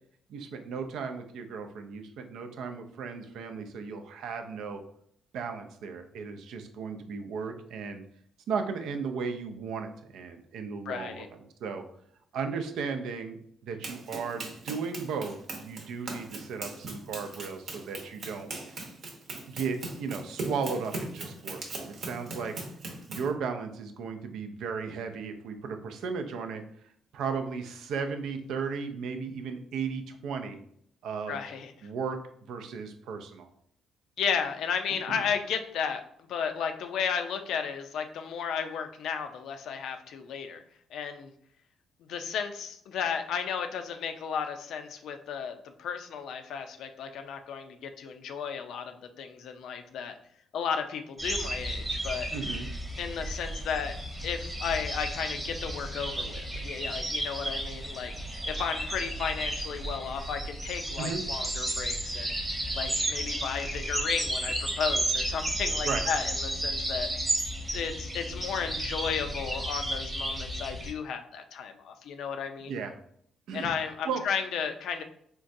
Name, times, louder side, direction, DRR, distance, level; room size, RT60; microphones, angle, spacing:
voice 1, 0.3-4.8 5.3-8.0 8.5-11.3 11.6-11.8 12.3-18.5 19.5-22.6 23.1-26.6 27.1-30.6 31.0-31.4 31.8-33.5 35.1-35.2 52.3-52.7 61.0-61.2 65.8-66.0 72.7-72.9 73.5-73.7 74.1-74.2, right 5 dB, 80° right, 6 dB, 0.4 m, -35 dB
voice 2, 10.9-11.3 31.3-31.7 34.2-40.6 40.9-41.3 42.1-50.2 50.5-52.3 53.0-53.9 54.2-58.1 58.5-62.4 62.8-67.1 67.7-72.7 73.5-75.0, left 7 dB, 75° left, 7 dB, 0.4 m, -34 dB
Run, 13.8-23.3, right 2 dB, 60° right, 0.8 m, -39 dB
sound 1, 51.2-70.9, right 1 dB, 15° right, 1.0 m, -33 dB
3.7 x 2.2 x 2.6 m, 0.66 s
cardioid pair, 90°, 0 cm